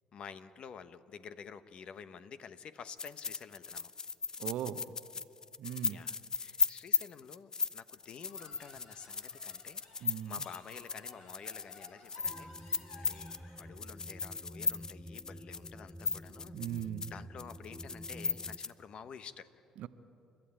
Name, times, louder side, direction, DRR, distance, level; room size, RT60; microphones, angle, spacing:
voice 1, 0.1-3.9 5.8-13.3 13.6-19.5, left 7 dB, 55° left, 12 dB, 1.1 m, -50 dB
sound 1, 3.0-17.1 17.4-18.7, left 4 dB, 35° left, 0.7 m, -36 dB
voice 2, 4.4-4.9 5.6-6.0 10.0-10.4 16.5-17.1 19.8-19.9, right 11 dB, 65° right, 12 dB, 0.9 m, -39 dB
sound 2, 8.3-13.8, left 2 dB, 75° left, 4.0 m, -56 dB
sound 3, 12.2-18.6, equal, ahead, 0.8 m, -49 dB
30.0 x 12.5 x 8.9 m, 2.7 s
hypercardioid pair, 60°, 2 cm